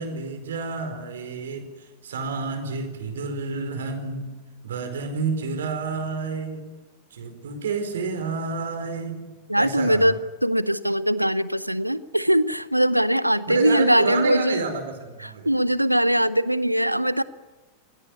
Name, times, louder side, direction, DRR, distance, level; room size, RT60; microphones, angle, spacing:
voice 1, 0.0-1.7 2.0-4.3 4.6-6.7 7.1-9.3 9.5-10.1 13.5-15.5, right 4 dB, 65° right, 7 dB, 4.7 m, -29 dB
voice 2, 9.5-14.7 15.2-17.2, equal, 90° right, 17 dB, 0.8 m, -21 dB
27.5 x 18.0 x 9.7 m, 1.3 s
figure-of-eight pair, 90°, 0 cm